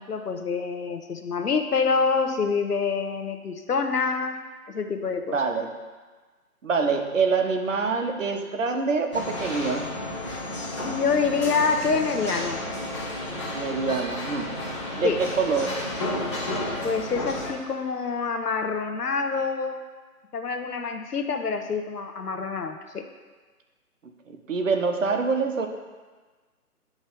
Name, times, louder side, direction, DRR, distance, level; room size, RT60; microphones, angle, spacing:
voice 1, 0.0-4.4 4.7-5.4 10.8-12.6 15.0-15.2 16.8-19.8 20.3-23.0, left 5 dB, 80° left, 5 dB, 0.9 m, -26 dB
voice 2, 5.3-5.8 6.6-9.9 13.5-15.8 24.3-25.7, right 4 dB, 55° right, 5 dB, 0.8 m, -26 dB
sound 1, 9.1-17.5, left 1 dB, 20° left, 0.7 m, -32 dB
8.2 x 3.1 x 5.1 m, 1.3 s
figure-of-eight pair, 145°, 46 cm